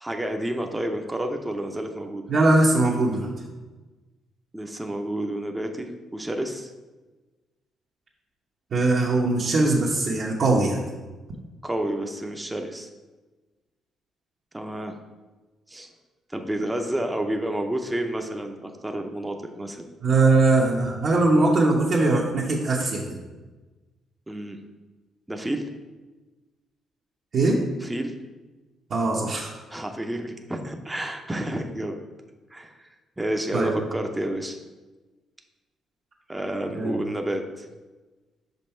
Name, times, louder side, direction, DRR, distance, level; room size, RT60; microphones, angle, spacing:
voice 1, 0.0-2.2 4.5-6.7 11.6-12.9 14.5-15.0 15.7-15.9 16.3-19.9 24.3-24.6 25.3-25.7 27.8-28.1 29.7-32.0 32.5-32.9 33.2-34.6 36.3-37.7, right 1 dB, 10° right, 4 dB, 0.6 m, -30 dB
voice 2, 2.3-3.3 8.7-10.8 20.0-23.2 27.3-27.6 28.9-29.5 33.5-33.8 36.7-36.9, right 2 dB, 60° right, -4 dB, 0.9 m, -21 dB
5.4 x 5.3 x 4.3 m, 1.2 s
cardioid pair, 90°, 0 cm